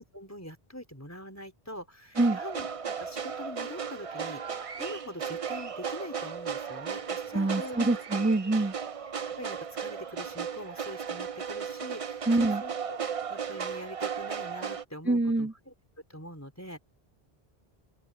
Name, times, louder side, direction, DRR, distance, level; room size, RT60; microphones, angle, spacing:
voice 1, 0.0-8.0 9.4-15.7 16.1-16.8, left 1 dB, 15° left, 4.2 m, -44 dB
sound 1, 2.1-14.8, right 6 dB, 40° right, 0.7 m, -35 dB
voice 2, 7.3-8.7 12.3-12.6 15.1-15.5, right 2 dB, 10° right, 1.2 m, -25 dB
open air
omnidirectional pair, 1.0 m